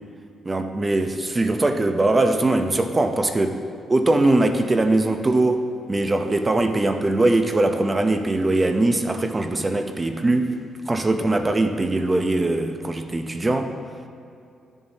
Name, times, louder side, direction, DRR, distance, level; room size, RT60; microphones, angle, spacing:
voice 1, 0.4-3.6 3.9-10.5 10.8-13.7, right 2 dB, 20° right, 6 dB, 0.6 m, -21 dB
12.5 x 7.2 x 4.1 m, 2.5 s
cardioid pair, 130°, 0 cm